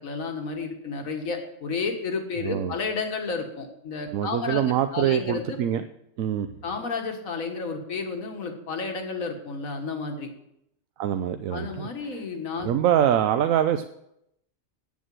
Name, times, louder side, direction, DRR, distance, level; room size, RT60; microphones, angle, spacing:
voice 1, 0.0-4.6 4.9-5.6 6.6-10.3 11.5-12.7, left 4 dB, 90° left, 4 dB, 1.9 m, -31 dB
voice 2, 2.4-2.7 4.1-5.8 6.2-6.5 11.0-12.2 12.6-13.8, right 10 dB, 80° right, 9 dB, 1.0 m, -24 dB
8.4 x 7.2 x 7.5 m, 0.79 s
omnidirectional pair, 1.4 m